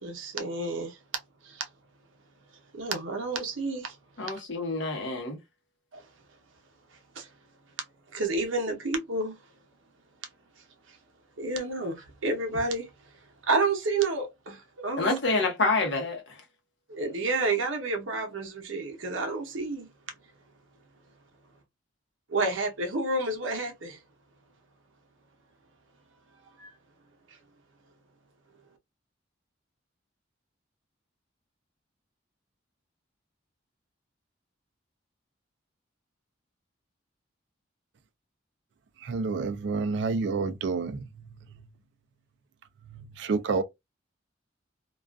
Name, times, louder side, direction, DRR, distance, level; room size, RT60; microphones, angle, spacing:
voice 1, 0.0-1.0 1.4-1.7 2.7-4.0 4.3-4.4 5.9-6.0 7.2-7.3 8.1-9.4 11.4-12.9 13.5-15.1 16.9-19.9 22.3-24.0 26.6-26.7, right 3 dB, 80° right, 0.7 m, -30 dB
voice 2, 4.2-5.4 15.0-16.2, left 3 dB, 65° left, 0.9 m, -27 dB
voice 3, 39.0-41.7 42.9-43.6, right 4 dB, 60° right, 0.3 m, -30 dB
2.3 x 2.3 x 2.2 m
head